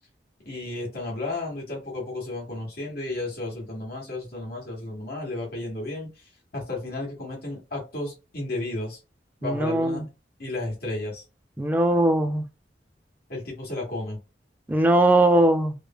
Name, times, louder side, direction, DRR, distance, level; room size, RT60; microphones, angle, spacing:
voice 1, 0.4-6.1 6.5-9.0 9.4-10.0 10.4-11.2 13.3-14.2, left 2 dB, 60° left, 1.1 m, -33 dB
voice 2, 9.4-10.0 11.6-12.4 14.7-15.7, right 1 dB, 10° right, 0.4 m, -20 dB
3.1 x 2.1 x 2.2 m
head